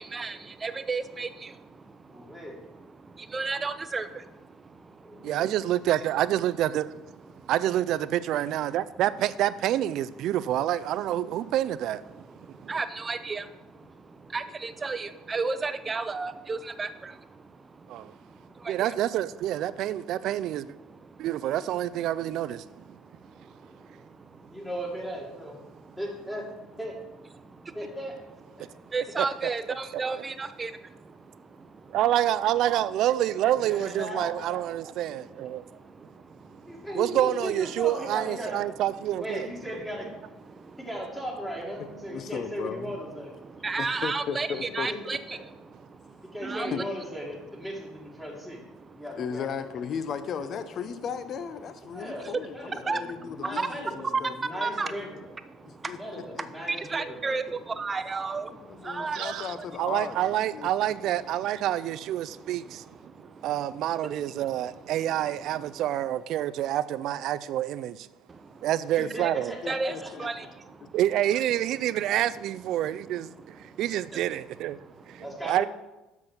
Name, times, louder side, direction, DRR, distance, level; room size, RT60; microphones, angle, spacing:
voice 1, 0.0-5.3 7.3-7.5 12.1-19.0 20.8-21.3 22.6-24.6 25.6-26.0 27.4-27.8 28.6-30.7 34.8-36.9 40.5-40.8 43.4-45.5 45.8-46.7 48.8-49.0 51.9-52.0 52.8-53.7 54.4-54.9 55.5-56.0 56.7-59.3 62.3-63.5 64.1-64.2 65.6-65.8 68.3-68.7 69.2-69.3 69.7-70.5 73.5-73.8 74.1-74.2 74.8-75.0, right 4 dB, 25° right, 0.6 m, -35 dB
voice 2, 2.1-2.6 5.0-5.5 13.7-13.8 24.5-25.6 26.0-26.5 26.8-27.0 27.7-28.2 28.6-28.7 33.5-34.6 36.6-38.6 39.2-40.1 40.8-43.3 44.5-44.6 44.9-45.0 45.3-45.4 46.3-48.6 48.9-49.5 50.3-50.6 51.9-55.3 56.0-57.6 61.0-61.1 69.0-70.3 75.2-75.7, equal, 10° left, 2.1 m, -37 dB
voice 3, 5.2-6.9 7.5-12.0 12.6-12.7 17.9-18.1 18.7-20.7 21.2-22.6 29.2-29.3 31.9-35.7 37.0-39.5 59.1-62.8 63.4-68.1 68.6-69.5 70.9-73.3 73.6-74.8 75.4-75.6, right 12 dB, 65° right, 0.4 m, -27 dB
voice 4, 41.8-42.9 43.8-44.9 46.7-46.9 49.2-55.1 55.9-56.5 58.6-60.9 69.6-70.3, left 7 dB, 50° left, 0.7 m, -36 dB
7.7 x 6.0 x 5.8 m
supercardioid pair, 95°, 0 cm